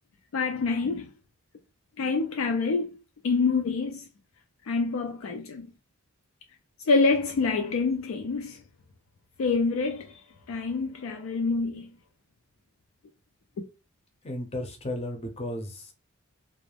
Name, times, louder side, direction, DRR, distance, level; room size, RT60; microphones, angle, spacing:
voice 1, 0.3-1.1 2.0-2.9 3.2-4.1 4.7-5.7 6.9-8.6 9.4-10.2 10.5-11.9, left 4 dB, 70° left, 0.4 m, -26 dB
voice 2, 14.2-15.9, left 1 dB, 30° left, 0.6 m, -34 dB
2.5 x 2.0 x 3.3 m
head